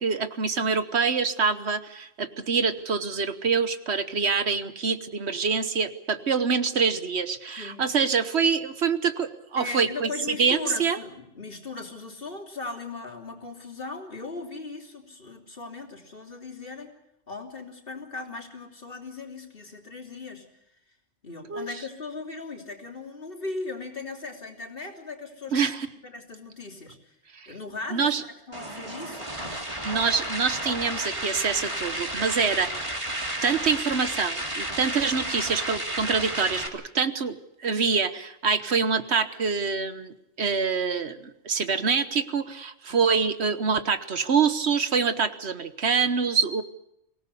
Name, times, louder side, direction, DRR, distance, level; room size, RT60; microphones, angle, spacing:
voice 1, 0.0-11.0 21.5-21.7 25.5-25.9 27.3-27.5 27.9-28.2 29.8-33.0 33.4-46.6, right 5 dB, 65° right, 11 dB, 1.4 m, -25 dB
voice 2, 7.6-7.9 9.6-16.9 17.3-20.4 21.2-25.7 26.0-27.2 27.5-29.7 42.9-43.0, left 3 dB, 50° left, 2 dB, 3.3 m, -38 dB
sound 1, 28.5-36.7, right 1 dB, 25° right, 2.8 m, -32 dB
24.5 x 17.5 x 8.3 m, 0.82 s
omnidirectional pair, 1.2 m